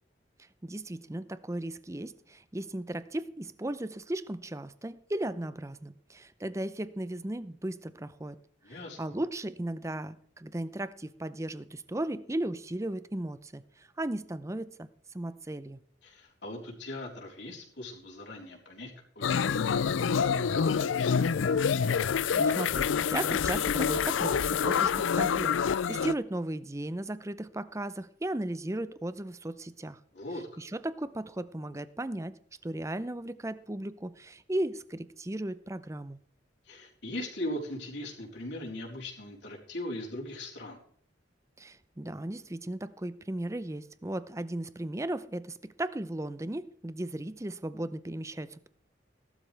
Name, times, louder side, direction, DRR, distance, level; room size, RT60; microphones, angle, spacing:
voice 1, 0.6-8.4 8.7-14.9 15.1-15.8 22.3-30.0 30.6-32.4 32.6-36.2 41.6-48.7, right 1 dB, 15° right, 15 dB, 0.6 m, -36 dB
voice 2, 8.6-9.0 16.0-21.4 30.1-30.5 36.6-40.8, left 1 dB, 65° left, -2 dB, 4.1 m, -40 dB
sound 1, 19.2-26.1, left 6 dB, 90° left, 0.4 m, -27 dB
18.0 x 12.5 x 3.4 m, 0.62 s
head